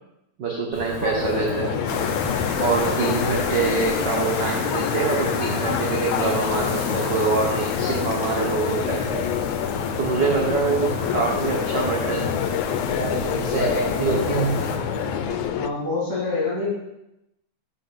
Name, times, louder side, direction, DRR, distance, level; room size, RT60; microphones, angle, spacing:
voice 1, 0.4-1.7 2.6-9.2 10.0-12.3 13.0-14.6, right 4 dB, 65° right, -2 dB, 1.1 m, -25 dB
Wind, 0.7-15.5, left 1 dB, 35° left, 3.3 m, -33 dB
voice 2, 1.0-1.8 15.5-16.7, left 3 dB, 55° left, -5 dB, 3.7 m, -27 dB
sound 1, 1.2-15.7, left 10 dB, 90° left, 2.0 m, -28 dB
sound 2, 1.9-14.8, left 6 dB, 70° left, 1.4 m, -31 dB
6.4 x 5.7 x 6.6 m, 0.90 s
omnidirectional pair, 3.4 m